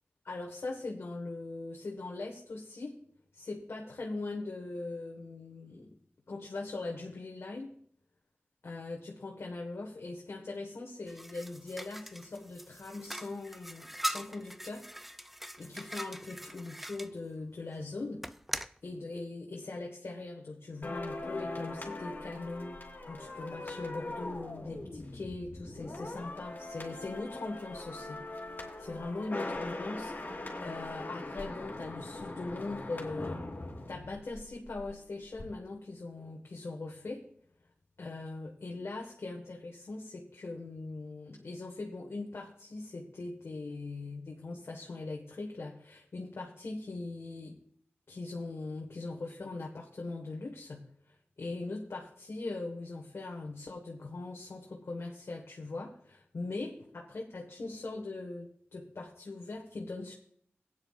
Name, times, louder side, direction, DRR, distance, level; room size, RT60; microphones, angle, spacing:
voice 1, 0.2-3.0 3.3-6.0 6.3-7.7 8.6-14.9 15.6-18.3 18.8-22.8 23.0-28.5 28.8-33.4 33.9-37.3 38.0-47.6 48.1-60.1, left 3 dB, 70° left, -1 dB, 1.4 m, -41 dB
sound 1, 11.1-17.1 18.2-18.8, equal, 5° right, 0.4 m, -41 dB
sound 2, 20.8-35.0 35.2-35.4, left 2 dB, 45° left, 2.5 m, -41 dB
16.5 x 9.3 x 2.4 m, 0.63 s
wide cardioid pair, 60°, 4 cm